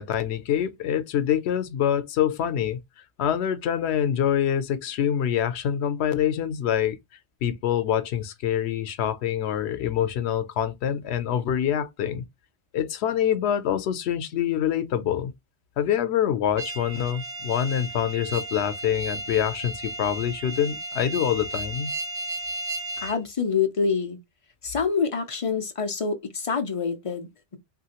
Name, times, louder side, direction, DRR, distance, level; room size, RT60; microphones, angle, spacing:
voice 1, 0.0-2.8 3.2-7.0 7.4-12.2 12.7-15.3 15.8-21.9, left 9 dB, 85° left, 0.8 m, -25 dB
sound 1, 16.6-23.2, right 2 dB, 85° right, 0.9 m, -34 dB
voice 2, 23.0-24.2 24.6-27.6, left 5 dB, 45° left, 0.4 m, -26 dB
3.0 x 2.5 x 2.8 m
omnidirectional pair, 1.1 m